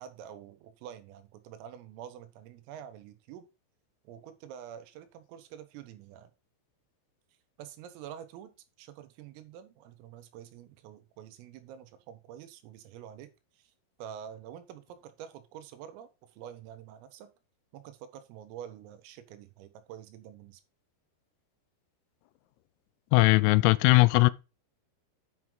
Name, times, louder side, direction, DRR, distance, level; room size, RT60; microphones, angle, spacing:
voice 1, 0.0-3.5 4.1-6.3 7.6-8.5 8.8-13.7 14.0-17.3 17.7-20.6, right 9 dB, 85° right, 3.7 m, -47 dB
voice 2, 23.1-24.3, left 21 dB, 85° left, 3.2 m, -20 dB
9.2 x 6.2 x 3.8 m
omnidirectional pair, 5.8 m